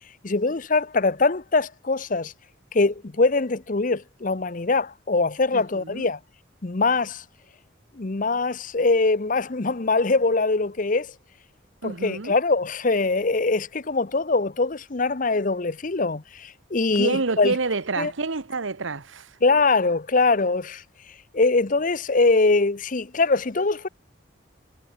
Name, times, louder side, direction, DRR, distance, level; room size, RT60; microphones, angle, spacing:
voice 1, 0.2-2.3 2.7-6.2 6.6-7.2 8.0-11.1 11.8-17.6 18.0-18.1 19.4-20.8 21.3-23.9, left 3 dB, 40° left, 0.8 m, -22 dB
voice 2, 5.5-6.1 11.8-12.3 16.9-19.3, right 3 dB, 75° right, 1.2 m, -28 dB
head